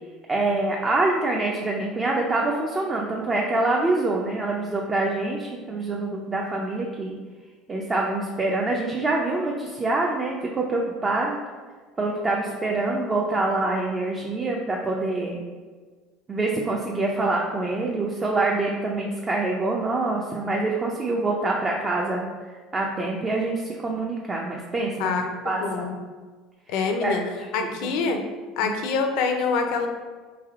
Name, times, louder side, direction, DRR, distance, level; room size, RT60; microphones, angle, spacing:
voice 1, 0.3-7.2 7.7-11.4 12.0-15.4 16.3-22.3 22.7-25.1 25.4-25.9 27.0-27.2 27.6-27.9 28.6-28.7, right 2 dB, 25° right, -1 dB, 0.5 m, -25 dB
voice 2, 25.0-25.9 26.7-27.2 27.5-28.2 28.6-29.9, left 5 dB, 70° left, 5 dB, 0.5 m, -25 dB
3.3 x 2.7 x 3.6 m, 1.5 s
hypercardioid pair, 85°, 0 cm